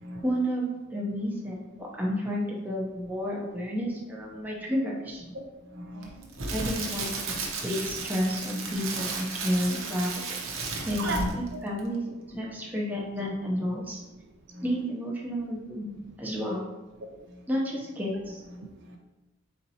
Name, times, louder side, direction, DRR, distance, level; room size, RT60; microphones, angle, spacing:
voice 1, 0.2-5.2 6.5-14.0 14.6-16.7 17.5-18.4, equal, 10° right, -4 dB, 0.8 m, -31 dB
voice 2, 5.7-6.3 11.0-11.5 14.5-14.6 17.3-17.4 18.6-19.0, right 1 dB, 55° right, 1 dB, 0.5 m, -35 dB
Crackle, 6.0-11.5 11.8-12.0, right 3 dB, 80° right, 0.8 m, -34 dB
4.3 x 4.1 x 2.9 m, 1.0 s
head